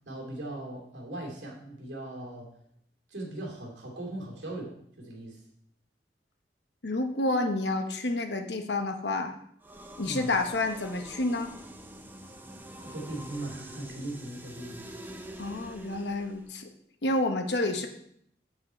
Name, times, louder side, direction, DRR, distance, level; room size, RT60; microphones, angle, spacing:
voice 1, 0.0-2.5 3.1-5.4 10.0-10.4 12.8-14.9, right 1 dB, 80° right, -1 dB, 2.5 m, -39 dB
voice 2, 6.8-9.3 10.0-11.5 15.4-16.7 17.0-17.9, left 2 dB, 70° left, 6 dB, 1.0 m, -29 dB
sound 1, 9.6-16.5, right 1 dB, 10° right, 0.7 m, -46 dB
7.8 x 7.5 x 4.3 m, 0.69 s
head